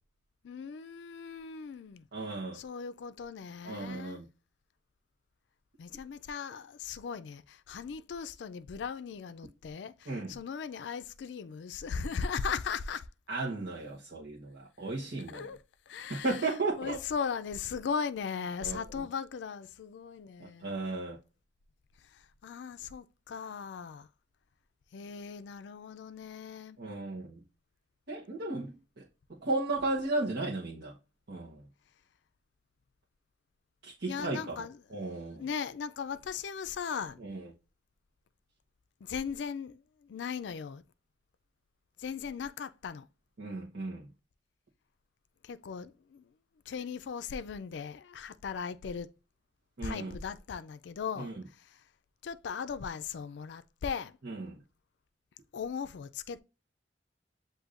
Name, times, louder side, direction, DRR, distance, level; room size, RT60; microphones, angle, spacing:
voice 1, 0.4-2.1 2.5-4.2 5.8-13.1 15.3-16.5 16.8-20.7 22.0-24.1 24.9-26.8 34.1-34.8 35.4-37.2 39.0-40.8 42.0-43.1 45.4-46.3 46.7-49.1 49.8-51.8 52.2-54.2 55.5-56.4, left 6 dB, 75° left, 0.4 m, -38 dB
voice 2, 2.1-2.6 3.6-4.2 10.1-10.3 13.3-15.5 16.1-17.0 18.6-18.8 20.6-21.2 26.8-27.4 28.1-29.0 29.3-30.9 31.3-31.6 33.8-34.6 34.9-35.4 37.2-37.5 43.4-44.1 49.8-50.1 51.2-51.4 54.2-54.6, right 2 dB, 65° right, 1.0 m, -35 dB
7.9 x 2.6 x 2.5 m
head